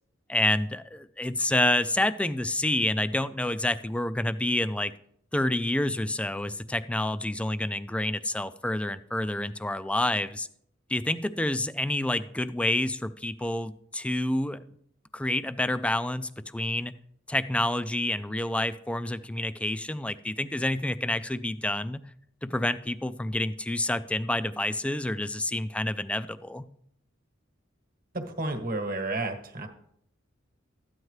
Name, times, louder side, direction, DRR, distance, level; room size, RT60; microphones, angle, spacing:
voice 1, 0.3-4.9 5.3-10.5 10.9-14.6 15.1-16.9 17.3-22.0 22.4-26.7, left 1 dB, 5° left, 14 dB, 0.3 m, -28 dB
voice 2, 28.1-29.7, right 2 dB, 50° right, 6 dB, 1.3 m, -31 dB
13.0 x 9.4 x 3.2 m, 0.70 s
head